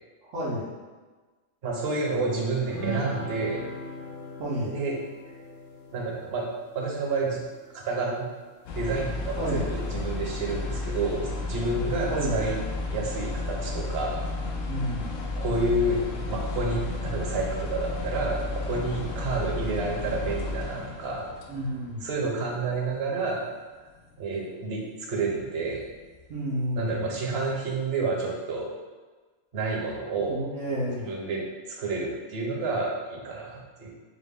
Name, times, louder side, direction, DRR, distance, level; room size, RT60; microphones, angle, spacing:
voice 1, 0.2-0.7 4.4-4.7 9.4-9.6 12.1-12.4 14.7-15.2 21.5-22.0 26.3-27.1 30.2-31.1, equal, 85° right, -10 dB, 1.2 m, -30 dB
voice 2, 1.6-3.6 4.6-5.0 5.9-6.4 6.7-7.4 7.7-8.3 8.7-12.6 12.9-14.2 15.4-16.0 16.3-21.3 22.0-23.4 24.2-25.9 26.8-28.7 29.5-30.4 31.0-33.9, right 3 dB, 60° right, -1 dB, 0.9 m, -29 dB
sound 1, 2.7-8.3, right 1 dB, 20° left, 0.4 m, -39 dB
sound 2, 8.7-22.8 23.0-23.3 23.9-24.1 25.1-25.2 25.7-26.5 26.8-26.9, left 3 dB, 85° left, 1.0 m, -33 dB
4.8 x 2.1 x 3.5 m, 1.3 s
omnidirectional pair, 1.3 m